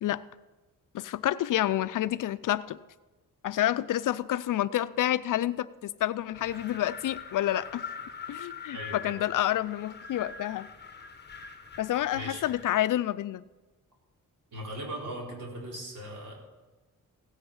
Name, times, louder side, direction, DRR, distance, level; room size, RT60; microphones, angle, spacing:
voice 1, 0.9-2.8 3.4-7.8 8.3-10.7 11.8-13.4, left 13 dB, 70° left, 16 dB, 0.5 m, -29 dB
Wind, 6.3-12.7, left 6 dB, 30° left, 1.3 m, -43 dB
voice 2, 8.7-9.2 12.1-12.4 14.5-16.4, right 1 dB, 65° right, -2 dB, 4.3 m, -39 dB
16.0 x 9.0 x 5.5 m, 1.2 s
cardioid pair, 100°, 33 cm